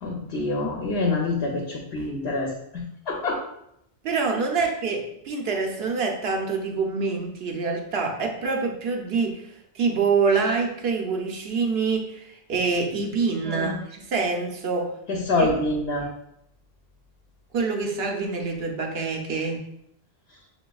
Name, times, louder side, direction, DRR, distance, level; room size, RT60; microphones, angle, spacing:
voice 1, 0.0-3.4 13.4-13.8 15.1-16.1, left 2 dB, 90° left, -1 dB, 1.0 m, -26 dB
voice 2, 4.0-15.0 15.4-15.5 17.5-19.6, right 4 dB, 75° right, 2 dB, 1.0 m, -26 dB
6.6 x 2.7 x 2.3 m, 0.76 s
omnidirectional pair, 1.0 m